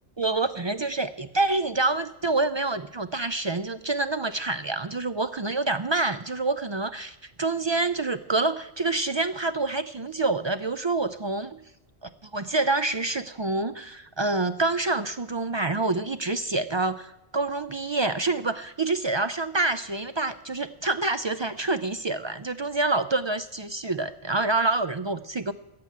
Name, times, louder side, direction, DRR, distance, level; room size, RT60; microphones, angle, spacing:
voice 1, 0.2-11.6 12.0-25.5, right 3 dB, 40° right, 11 dB, 0.4 m, -27 dB
14.5 x 7.6 x 8.5 m, 0.88 s
omnidirectional pair, 1.0 m